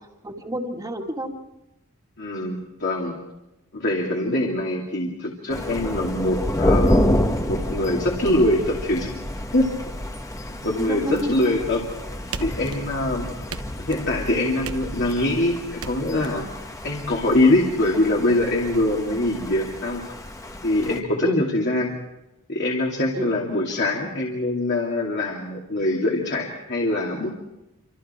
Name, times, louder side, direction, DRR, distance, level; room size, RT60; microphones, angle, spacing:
voice 1, 0.2-1.3 10.8-11.5 21.2-21.4 23.2-23.3, equal, 15° right, 2 dB, 2.3 m, -29 dB
voice 2, 2.2-3.2 3.7-9.1 9.5-9.7 10.6-11.8 12.1-13.3 13.9-16.5 16.8-20.0 20.6-22.0 22.5-27.3, left 1 dB, 50° left, -1 dB, 2.8 m, -23 dB
Thunder, 5.5-21.0, left 1 dB, 15° left, 1.5 m, -28 dB
sound 1, 12.3-13.1 13.5-14.1 14.6-15.3 15.8-16.3, right 5 dB, 85° right, 1.1 m, -37 dB
28.0 x 26.0 x 4.5 m, 0.94 s
head